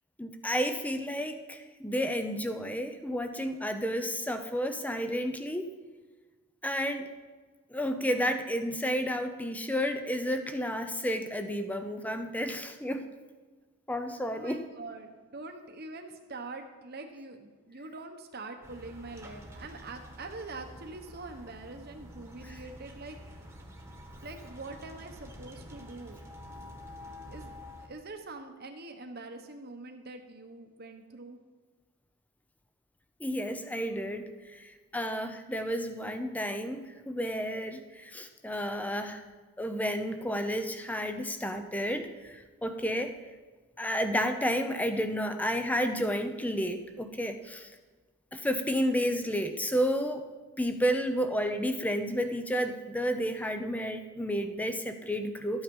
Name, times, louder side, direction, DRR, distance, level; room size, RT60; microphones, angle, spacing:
voice 1, 0.2-5.7 6.6-7.1 7.7-13.1 13.9-14.6 33.2-39.2 39.6-43.1 43.8-47.7 48.3-50.3 50.6-55.6, equal, 5° left, 8 dB, 0.6 m, -31 dB
voice 2, 14.3-23.5 24.2-26.2 27.3-31.4, right 3 dB, 45° right, 6 dB, 1.1 m, -44 dB
sound 1, 18.6-27.9, equal, 10° right, 1.4 m, -48 dB
12.5 x 8.9 x 5.4 m, 1.4 s
head